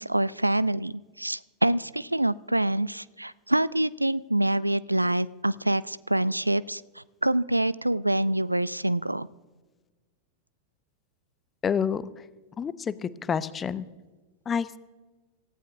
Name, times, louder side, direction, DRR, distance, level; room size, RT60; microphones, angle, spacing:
voice 1, 0.0-9.3, right 1 dB, 85° right, 21 dB, 0.3 m, -26 dB
voice 2, 11.6-12.1 12.6-13.9 14.5-14.8, left 7 dB, 20° left, 16 dB, 0.6 m, -28 dB
27.0 x 14.5 x 2.6 m, 1.3 s
figure-of-eight pair, 90°, 0 cm